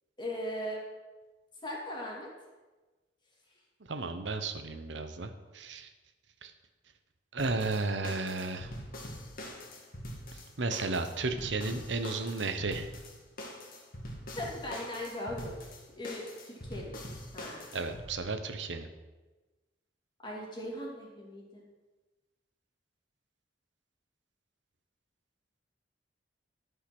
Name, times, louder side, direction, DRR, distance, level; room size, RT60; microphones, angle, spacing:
voice 1, 0.2-0.8 1.6-2.3 14.4-17.0 17.3-17.6 20.2-21.6, left 1 dB, 25° left, -2 dB, 2.7 m, -39 dB
voice 2, 3.9-5.9 6.4-6.5 7.3-8.7 10.3-12.9 17.7-18.9, right 3 dB, 75° right, 8 dB, 0.9 m, -34 dB
sound 1, 7.4-18.1, left 1 dB, 55° left, 1.9 m, -44 dB
11.5 x 5.6 x 6.1 m, 1.2 s
head